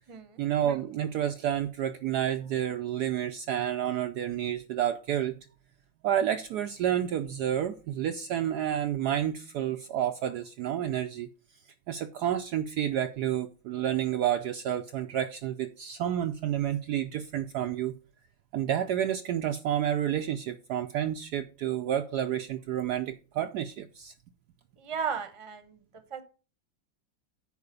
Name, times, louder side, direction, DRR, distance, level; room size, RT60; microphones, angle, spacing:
voice 1, 0.4-5.4 6.0-11.3 11.9-17.9 18.5-24.1, right 10 dB, 70° right, 1.0 m, -30 dB
voice 2, 24.8-25.6 26.1-26.2, right 6 dB, 20° right, 0.8 m, -34 dB
9.8 x 4.5 x 6.8 m
omnidirectional pair, 2.1 m